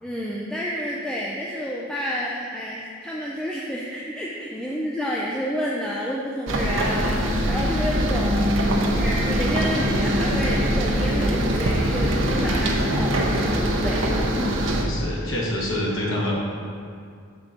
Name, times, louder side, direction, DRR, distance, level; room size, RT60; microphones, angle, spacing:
voice 1, 0.0-8.5 8.9-13.5 13.8-14.6, equal, 5° left, -5 dB, 0.4 m, -29 dB
sound 1, 6.5-14.8, equal, 75° right, 0.8 m, -22 dB
voice 2, 14.8-16.3, left 1 dB, 80° left, -4 dB, 1.4 m, -26 dB
5.8 x 3.8 x 5.9 m, 2.3 s
head